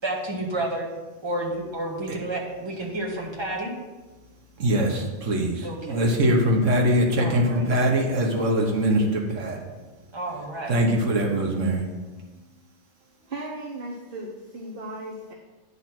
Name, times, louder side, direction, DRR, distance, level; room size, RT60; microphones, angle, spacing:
voice 1, 0.0-0.9 1.2-3.7 5.6-6.1 7.2-7.8 10.1-10.8, right 1 dB, 20° right, -4 dB, 1.6 m, -31 dB
voice 2, 4.6-9.6 10.7-11.8, right 1 dB, 75° right, 0 dB, 1.5 m, -22 dB
voice 3, 13.3-15.3, right 1 dB, 50° right, -3 dB, 1.0 m, -36 dB
9.8 x 4.1 x 5.9 m, 1.2 s
omnidirectional pair, 1.3 m